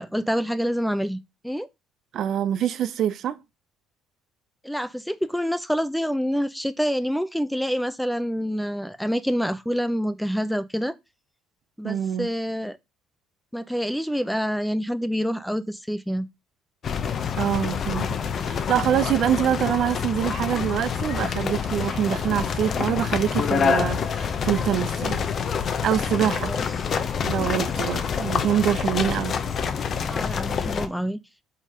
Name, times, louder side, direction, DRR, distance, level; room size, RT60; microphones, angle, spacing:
voice 1, 0.0-1.7 4.6-10.9 11.8-12.8 13.5-16.3 26.4-26.7 30.1-31.2, equal, ahead, 0.7 m, -27 dB
voice 2, 2.1-3.4 11.8-12.3 17.4-18.1 18.4-25.2 25.8-26.5 27.2-29.4, right 10 dB, 60° right, 0.5 m, -25 dB
sound 1, 16.8-30.9, left 6 dB, 50° left, 0.9 m, -27 dB
5.5 x 4.1 x 5.0 m
supercardioid pair, 80°, 0 cm